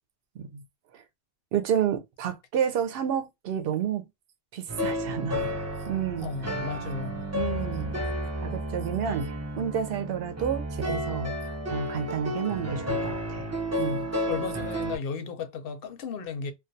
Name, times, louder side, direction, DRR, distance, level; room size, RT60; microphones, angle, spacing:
voice 1, 1.5-4.0 4.5-5.5 5.9-6.3 7.3-7.9 8.4-11.3 11.7-13.5 13.8-14.1, right 8 dB, 70° right, 0.8 m, -30 dB
sound 1, 4.7-15.0, equal, 20° right, 0.5 m, -32 dB
voice 2, 6.2-7.2 14.3-16.5, left 5 dB, 70° left, 0.8 m, -34 dB
2.3 x 2.3 x 2.6 m
omnidirectional pair, 1.0 m